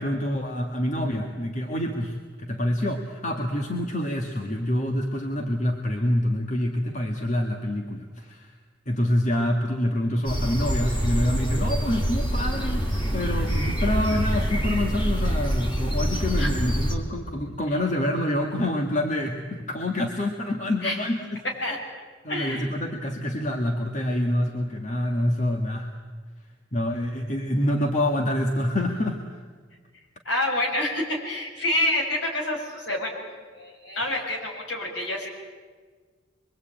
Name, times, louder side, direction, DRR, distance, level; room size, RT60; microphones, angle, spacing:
voice 1, 0.0-8.5 8.9-21.4 22.2-25.9 26.7-29.4, left 1 dB, 40° left, 3 dB, 1.9 m, -27 dB
sound 1, 10.2-16.9, equal, 25° left, 4.2 m, -25 dB
voice 2, 22.3-22.7 30.2-33.2 33.5-35.3, left 1 dB, 70° left, 0 dB, 6.6 m, -27 dB
26.0 x 23.0 x 9.0 m, 1.5 s
head